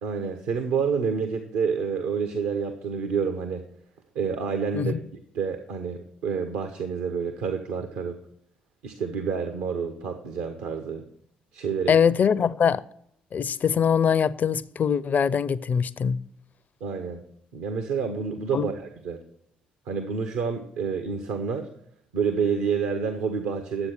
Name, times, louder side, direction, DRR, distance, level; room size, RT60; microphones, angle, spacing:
voice 1, 0.0-3.6 4.1-4.9 5.3-8.2 8.8-11.0 11.5-11.9 16.8-17.2 17.5-19.2 19.9-21.7 22.1-23.9, right 6 dB, 65° right, 0.9 m, -28 dB
voice 2, 11.9-12.8 13.3-16.2 18.5-18.7, left 7 dB, 40° left, 0.5 m, -22 dB
11.0 x 8.0 x 6.3 m
figure-of-eight pair, 45°, 4 cm